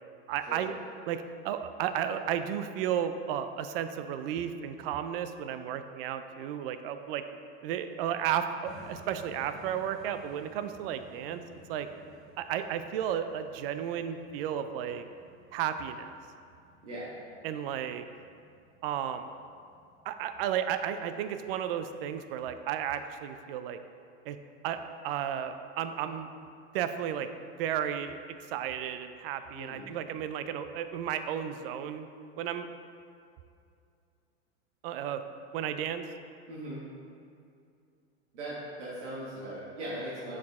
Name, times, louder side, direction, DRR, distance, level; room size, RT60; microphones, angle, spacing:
voice 1, 0.3-0.7 1.1-7.2 7.6-11.4 11.7-11.9 12.4-15.1 15.5-16.1 17.4-18.1 18.8-19.3 20.1-23.8 24.3-24.4 24.6-26.3 26.7-27.3 27.6-32.1 32.4-32.7 34.8-35.2 35.5-36.0, right 9 dB, 55° right, 9 dB, 0.5 m, -33 dB
sound 1, 8.6-22.6, equal, ahead, 0.9 m, -57 dB
voice 2, 29.5-29.9 36.5-36.8 38.3-40.4, right 1 dB, 90° right, -7 dB, 1.5 m, -39 dB
6.1 x 4.9 x 3.6 m, 2.4 s
supercardioid pair, 135°, 34 cm